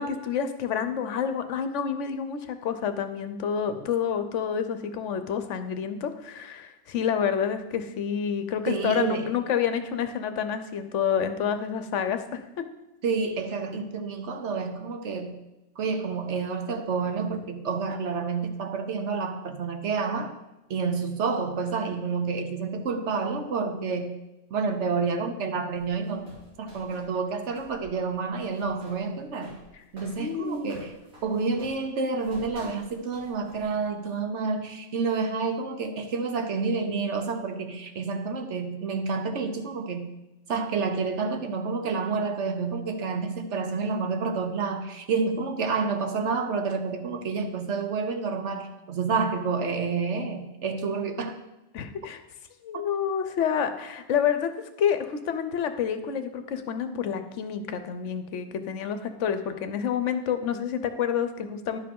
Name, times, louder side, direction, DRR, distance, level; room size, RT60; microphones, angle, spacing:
voice 1, 0.0-12.4 30.2-30.7 51.7-52.2 52.6-54.5 54.8-61.8, left 7 dB, 65° left, 10 dB, 1.0 m, -28 dB
voice 2, 8.7-9.3 13.0-15.4 15.8-20.3 20.7-24.2 24.5-26.3 26.6-29.6 29.9-30.9 31.2-40.1 40.5-51.4, right 4 dB, 60° right, 6 dB, 1.0 m, -29 dB
sound 1, 25.7-27.9 28.2-33.9, left 1 dB, 80° right, 3.3 m, -50 dB
10.5 x 5.4 x 5.3 m, 0.99 s
omnidirectional pair, 1.5 m